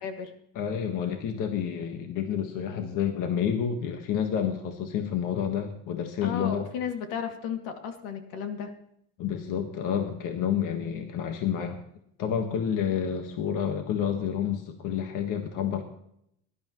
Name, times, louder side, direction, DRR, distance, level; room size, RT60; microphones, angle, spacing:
voice 1, 0.5-6.6 9.2-11.8 12.2-15.8, left 8 dB, 55° left, 5 dB, 1.5 m, -29 dB
voice 2, 6.2-8.7 10.7-10.9, left 7 dB, 80° left, 5 dB, 2.4 m, -34 dB
19.0 x 11.5 x 3.1 m, 0.73 s
cardioid pair, 150°, 37 cm